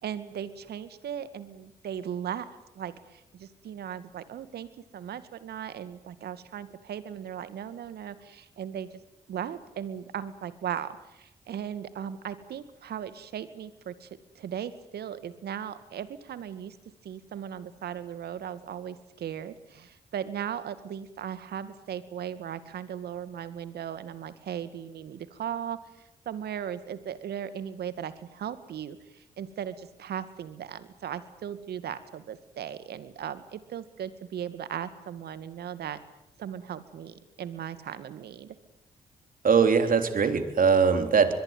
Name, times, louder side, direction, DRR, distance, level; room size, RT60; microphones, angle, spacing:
voice 1, 0.0-8.9 9.3-14.1 14.4-16.8 17.0-25.8 26.3-36.0 36.4-38.5, right 9 dB, 75° right, 13 dB, 2.1 m, -37 dB
voice 2, 39.4-41.3, right 6 dB, 55° right, 8 dB, 3.5 m, -21 dB
24.0 x 22.5 x 9.4 m, 0.83 s
supercardioid pair, 45°, 17 cm